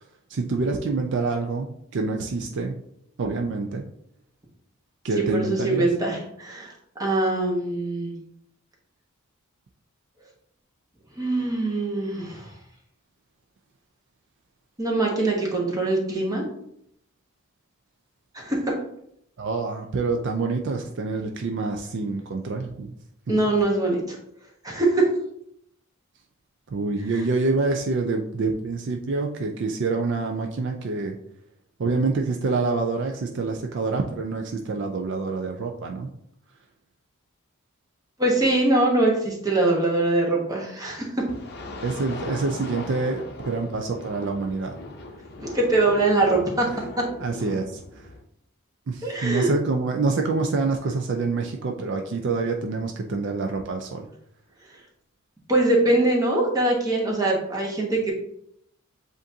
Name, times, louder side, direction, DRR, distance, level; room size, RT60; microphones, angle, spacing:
voice 1, 0.3-2.7 3.2-3.8 5.0-5.9 19.4-22.9 23.3-23.4 26.7-31.2 31.8-36.1 41.8-44.8 47.2-48.1 48.9-54.1, right 3 dB, 55° right, 3 dB, 0.4 m, -26 dB
voice 2, 5.2-6.7 7.0-8.1 11.2-12.5 14.8-16.5 18.3-18.7 23.3-24.2 24.6-25.0 38.2-41.1 45.4-46.7 49.0-49.5 55.5-58.1, right 2 dB, 15° right, -2 dB, 1.0 m, -23 dB
sound 1, 41.3-48.2, left 2 dB, 50° left, 0.7 m, -39 dB
7.5 x 2.6 x 2.7 m, 0.74 s
head